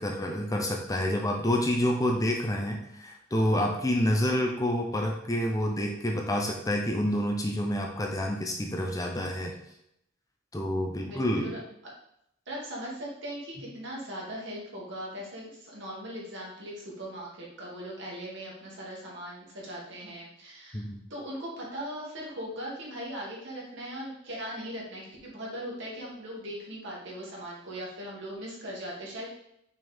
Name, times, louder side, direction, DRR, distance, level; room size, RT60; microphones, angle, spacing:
voice 1, 0.0-9.5 10.5-11.5 20.7-21.0, left 1 dB, 15° left, 1 dB, 0.6 m, -28 dB
voice 2, 11.0-11.5 12.5-29.3, equal, 60° right, -4 dB, 2.1 m, -39 dB
6.2 x 4.5 x 3.5 m, 0.78 s
head